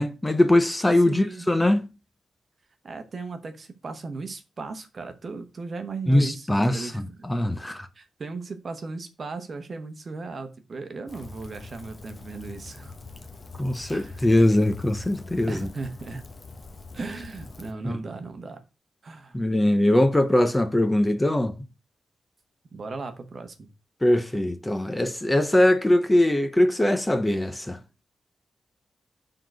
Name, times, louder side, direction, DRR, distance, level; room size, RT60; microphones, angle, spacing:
voice 1, 0.0-1.9 6.1-6.9 7.2-7.9 13.6-15.7 17.8-17.9 19.3-21.5 24.0-27.8, left 1 dB, 10° left, 0.6 m, -21 dB
voice 2, 1.1-1.4 2.8-7.3 7.9-13.0 13.9-14.3 15.5-16.3 16.9-18.6 19.0-19.4 22.7-23.7, right 3 dB, 40° right, 1.0 m, -37 dB
Rain, 11.1-17.7, left 3 dB, 30° left, 0.9 m, -43 dB
7.0 x 3.9 x 6.0 m
wide cardioid pair, 175°, 0 cm